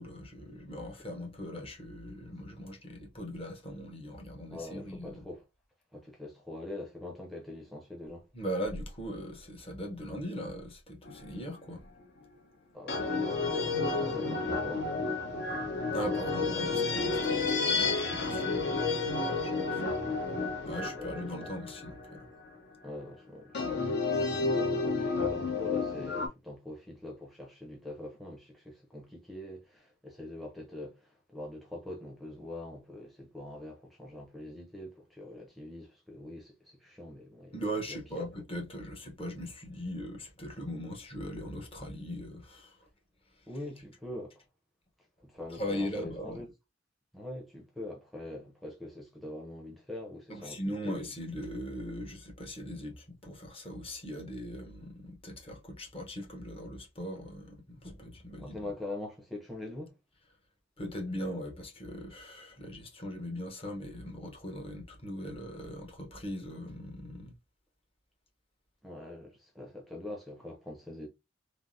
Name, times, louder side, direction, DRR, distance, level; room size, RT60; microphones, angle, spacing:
voice 1, 0.0-5.3 8.3-11.8 15.9-19.5 19.9-20.0 20.6-22.3 37.5-42.8 45.6-46.4 50.3-58.6 60.8-67.3, equal, 30° left, 0.9 m, -40 dB
voice 2, 4.5-5.4 5.9-8.3 12.7-15.7 16.5-16.7 19.0-20.2 20.6-21.5 22.8-23.8 24.3-37.6 37.9-38.3 43.5-44.4 45.2-46.5 47.1-51.0 58.4-60.0 68.8-71.1, left 1 dB, ahead, 0.6 m, -44 dB
sound 1, 11.1-11.5 12.9-22.5 23.5-26.3, left 3 dB, 60° left, 0.9 m, -31 dB
3.3 x 2.0 x 2.6 m
head